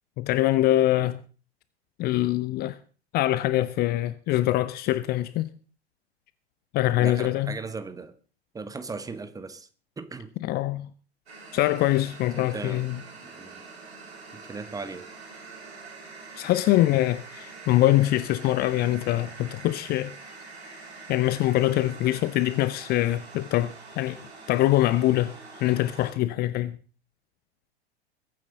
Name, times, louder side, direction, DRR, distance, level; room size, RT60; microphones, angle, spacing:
voice 1, 0.2-1.2 2.0-2.8 3.1-5.5 6.7-7.5 10.4-10.9 11.5-13.0 16.4-20.1 21.1-24.2 24.5-25.3 25.6-26.8, left 15 dB, 30° left, 0.6 m, -24 dB
voice 2, 7.0-8.1 8.5-9.7 10.0-10.3 12.4-12.9 13.2-13.6 14.5-15.0, right 4 dB, 10° right, 1.2 m, -37 dB
sound 1, 11.3-26.1, right 4 dB, 70° right, 5.4 m, -45 dB
21.5 x 9.4 x 3.9 m
figure-of-eight pair, 95°, 32 cm